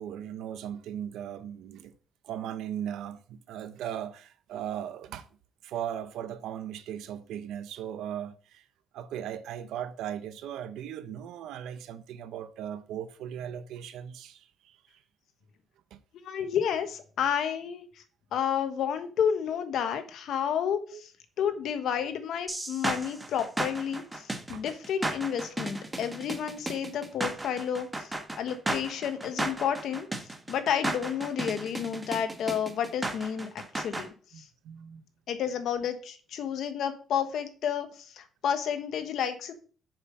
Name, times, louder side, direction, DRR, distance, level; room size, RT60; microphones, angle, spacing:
voice 1, 0.0-1.9 2.2-5.3 5.6-8.6 8.9-15.0 15.9-16.0 20.9-21.0 24.5-24.6 34.3-35.0, right 10 dB, 85° right, 0.9 m, -38 dB
voice 2, 16.2-18.0 18.3-21.1 21.4-30.1 30.5-33.5 33.7-34.1 34.3-34.5 35.3-39.5, left 8 dB, 75° left, 1.3 m, -31 dB
sound 1, 22.5-34.1, right 2 dB, 15° right, 1.5 m, -34 dB
7.0 x 5.6 x 5.3 m
cardioid pair, 90°, 0 cm